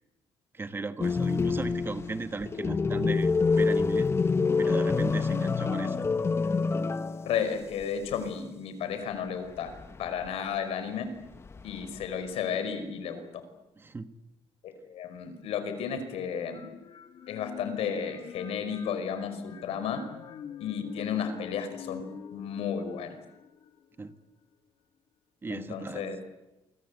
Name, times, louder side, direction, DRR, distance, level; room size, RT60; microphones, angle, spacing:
voice 1, 0.5-3.3 3.6-4.1 4.6-6.0 13.8-14.1 24.0-24.1 25.4-26.1, right 3 dB, 20° right, 10 dB, 1.6 m, -36 dB
sound 1, 1.0-7.5 7.8-7.9 9.6-10.3 11.3-12.1, left 4 dB, 25° left, 1.2 m, -27 dB
voice 2, 7.3-9.7 10.0-11.1 11.6-13.2 14.6-16.6 17.3-20.0 20.6-22.0 22.3-23.2 25.5-26.2, left 7 dB, 80° left, 9 dB, 5.1 m, -33 dB
sound 2, 16.5-24.2, left 8 dB, 55° left, 2.6 m, -46 dB
28.5 x 24.5 x 8.2 m, 0.97 s
cardioid pair, 140°, 10 cm